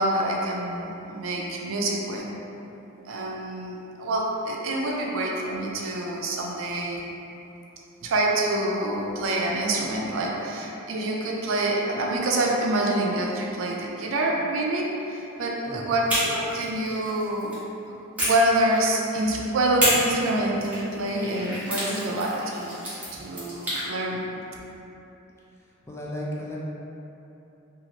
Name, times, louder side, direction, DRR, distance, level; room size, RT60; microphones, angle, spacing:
voice 1, 0.0-2.2 3.1-7.0 8.0-17.6 18.2-22.8 23.1-24.2, right 1 dB, 75° right, -2 dB, 0.4 m, -26 dB
sound 1, 16.1-17.6 18.2-19.2 19.8-23.9, equal, 10° right, 0.7 m, -30 dB
voice 2, 25.8-26.6, left 1 dB, 15° left, -5 dB, 0.3 m, -34 dB
2.8 x 2.4 x 2.8 m, 2.9 s
head